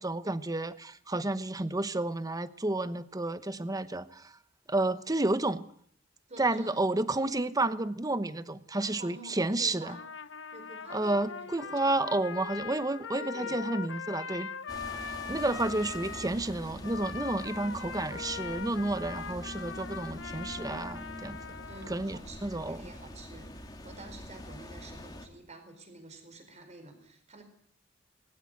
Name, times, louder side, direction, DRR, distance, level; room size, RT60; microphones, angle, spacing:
voice 1, 0.0-4.3 4.7-5.7 6.4-10.0 10.9-14.5 15.0-21.4 21.9-22.8, right 2 dB, 20° right, 14 dB, 1.0 m, -31 dB
voice 2, 6.3-6.8 8.8-10.1 10.5-12.0 13.2-13.6 21.7-27.4, right 2 dB, 35° right, 7 dB, 4.8 m, -49 dB
Trumpet, 9.9-16.3 16.8-22.1, left 6 dB, 85° left, 1.0 m, -41 dB
sound 1, 14.7-25.3, left 1 dB, 20° left, 2.7 m, -44 dB
20.5 x 16.5 x 9.6 m, 0.65 s
head